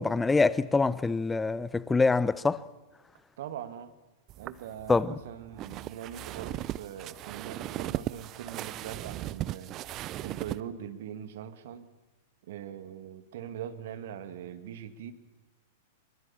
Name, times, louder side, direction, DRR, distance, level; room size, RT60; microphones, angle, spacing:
voice 1, 0.0-2.6 4.9-5.1, left 3 dB, 10° left, 0.8 m, -25 dB
voice 2, 3.4-3.9 4.4-9.8 10.2-11.9 12.4-15.1, right 9 dB, 55° right, 2.0 m, -42 dB
sound 1, 4.3-10.6, right 14 dB, 35° right, 0.7 m, -37 dB
24.5 x 24.0 x 7.4 m
figure-of-eight pair, 100°, 0 cm